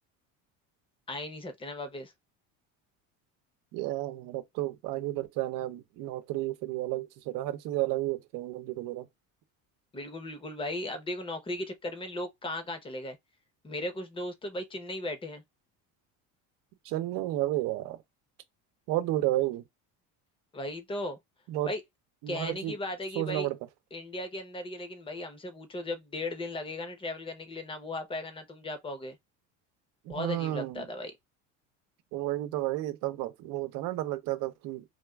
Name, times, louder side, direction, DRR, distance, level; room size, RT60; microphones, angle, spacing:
voice 1, 1.1-2.1 9.9-13.2 13.6-15.4 20.5-21.2 21.6-21.8 22.3-23.5 23.9-29.2 30.1-31.1, left 1 dB, 15° left, 0.7 m, -37 dB
voice 2, 3.7-9.1 16.8-18.0 18.9-19.6 21.5-21.7 22.2-22.7 23.2-23.6 30.1-30.9 32.1-34.8, right 15 dB, 70° right, 0.8 m, -32 dB
3.8 x 2.4 x 2.3 m
cardioid pair, 135°, 35 cm